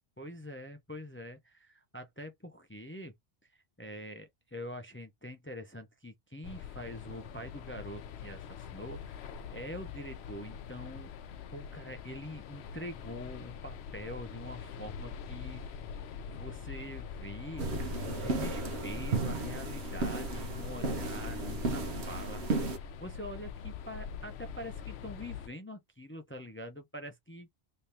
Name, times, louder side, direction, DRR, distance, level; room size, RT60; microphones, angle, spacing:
voice 1, 0.2-3.1 3.4-9.2 9.5-11.1 11.5-15.6 16.3-17.7 18.0-22.4 23.0-27.5, equal, 15° left, 0.5 m, -45 dB
sound 1, 6.4-25.5, left 7 dB, 75° left, 0.9 m, -44 dB
sound 2, 17.6-22.8, right 2 dB, 80° right, 1.2 m, -34 dB
3.2 x 2.8 x 3.3 m
omnidirectional pair, 1.1 m